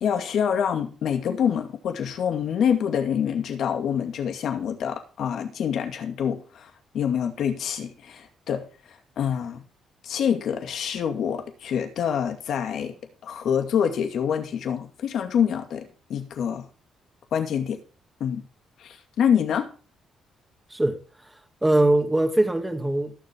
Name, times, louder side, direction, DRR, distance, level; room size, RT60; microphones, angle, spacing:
voice 1, 0.0-8.6 9.2-9.6 10.0-12.9 13.2-16.7 17.3-17.8 18.2-18.4 18.8-19.7, left 8 dB, 70° left, 2.3 m, -26 dB
voice 2, 20.7-23.1, right 1 dB, 10° right, 2.3 m, -23 dB
17.5 x 7.3 x 3.7 m
cardioid pair, 90°, 0 cm